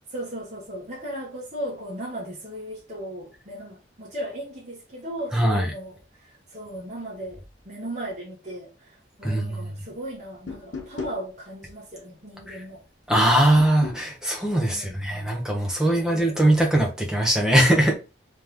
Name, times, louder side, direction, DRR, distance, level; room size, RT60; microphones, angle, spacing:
voice 1, 0.1-12.8 14.5-15.1 15.8-16.7, right 1 dB, 40° right, 1.3 m, -37 dB
voice 2, 5.3-5.7 9.2-9.7 12.5-12.6 13.1-17.9, right 1 dB, 5° right, 1.0 m, -21 dB
sound 1, 10.5-11.2 13.6-14.1, left 4 dB, 70° left, 0.9 m, -35 dB
3.7 x 3.2 x 3.5 m
head